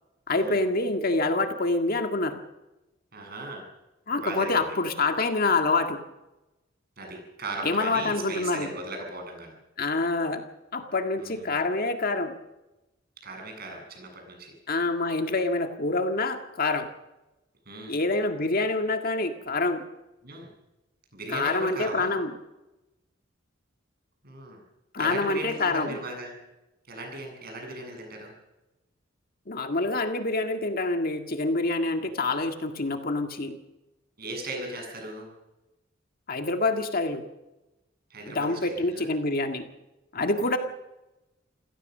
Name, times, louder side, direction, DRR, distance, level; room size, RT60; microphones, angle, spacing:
voice 1, 0.3-2.4 4.1-6.0 7.6-8.7 9.8-10.4 10.7-12.3 14.7-16.9 17.9-19.8 21.3-22.3 24.9-26.0 29.5-33.6 36.3-37.3 38.3-39.6 40.1-40.6, left 3 dB, 50° left, 6 dB, 1.8 m, -26 dB
voice 2, 3.1-3.6 4.1-4.7 7.0-9.6 11.2-11.6 13.2-14.5 17.7-18.0 20.2-20.5 21.1-22.1 24.2-24.6 25.0-26.3 26.9-28.3 32.0-32.1 34.2-35.3 38.1-39.1 40.4-40.6, right 2 dB, 50° right, 2 dB, 7.9 m, -37 dB
27.5 x 17.0 x 6.7 m, 1.0 s
head